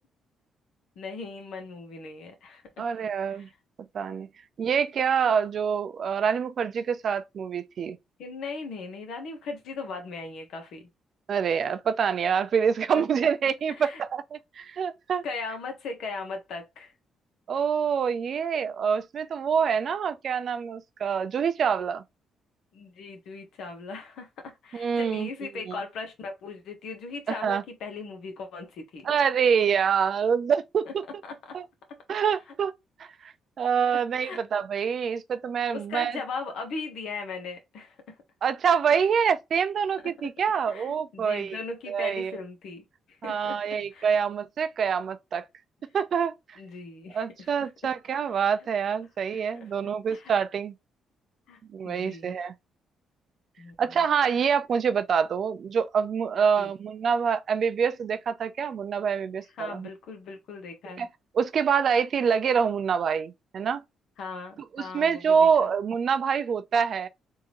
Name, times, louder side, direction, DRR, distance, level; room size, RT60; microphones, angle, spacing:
voice 1, 1.0-2.9 3.3-3.5 8.2-10.9 12.9-13.0 13.7-14.0 15.2-16.9 22.7-29.1 30.8-30.9 31.3-31.6 31.9-32.0 34.2-34.4 35.7-38.2 40.7-43.6 43.9-44.1 46.6-47.5 49.3-49.7 50.1-50.3 51.5-51.6 51.8-52.4 53.6-53.7 56.6-56.7 59.6-61.1 64.2-65.7, left 4 dB, 75° left, 1.2 m, -38 dB
voice 2, 2.8-3.5 3.9-4.3 4.6-8.0 11.3-15.2 17.5-22.0 24.7-25.3 25.7-25.8 27.3-27.6 29.0-30.9 31.5-31.6 32.1-32.7 33.0-36.2 38.4-41.6 41.9-42.4 43.2-45.5 45.9-46.6 47.1-50.7 51.7-52.5 53.8-59.9 61.0-61.1 61.3-63.8 64.7-67.1, right 7 dB, 55° right, 0.5 m, -26 dB
3.7 x 2.7 x 3.0 m
cardioid pair, 90°, 0 cm